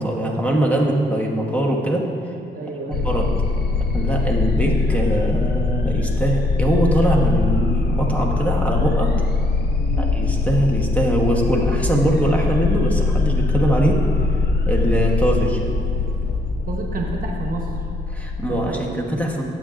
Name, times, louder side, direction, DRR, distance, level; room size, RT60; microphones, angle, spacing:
voice 1, 0.0-2.1 3.0-3.3 3.9-9.1 10.0-14.0 14.7-15.6 18.1-19.4, right 1 dB, 5° left, -1 dB, 1.1 m, -22 dB
voice 2, 2.5-3.2 9.7-10.2 16.6-17.8 18.5-18.9, right 3 dB, 45° right, 2 dB, 1.0 m, -31 dB
sound 1, 2.9-18.6, left 3 dB, 55° left, 0.7 m, -22 dB
15.0 x 7.6 x 2.5 m, 2.7 s
cardioid pair, 90°, 20 cm